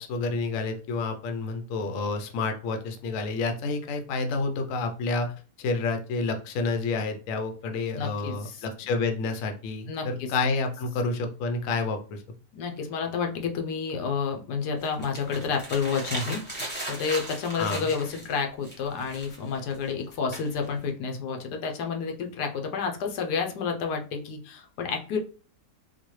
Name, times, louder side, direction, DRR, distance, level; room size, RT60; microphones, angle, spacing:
voice 1, 0.0-5.3 5.6-12.2 17.6-17.9, left 3 dB, 65° left, 5 dB, 0.9 m, -29 dB
voice 2, 7.9-8.6 9.9-10.3 12.5-25.2, left 5 dB, 85° left, 3 dB, 1.2 m, -30 dB
sound 1, 14.8-18.4 18.6-20.9, right 1 dB, 10° left, 0.6 m, -37 dB
3.9 x 2.1 x 3.1 m, 0.37 s
omnidirectional pair, 1.7 m